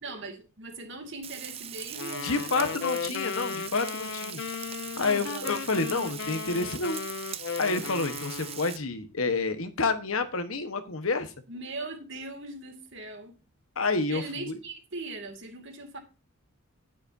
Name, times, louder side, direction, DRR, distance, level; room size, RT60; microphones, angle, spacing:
voice 1, 0.0-2.8 3.3-3.7 5.0-5.5 11.5-13.4 14.1-16.0, right 3 dB, 55° right, 2.3 m, -40 dB
Frying (food), 1.2-8.8, right 9 dB, 25° right, 0.5 m, -41 dB
sound 1, 1.9-8.8, left 6 dB, 55° left, 0.4 m, -36 dB
voice 2, 2.2-4.4 5.0-7.0 7.6-11.3 13.8-14.5, left 3 dB, 70° left, 1.2 m, -29 dB
10.0 x 9.8 x 2.7 m
head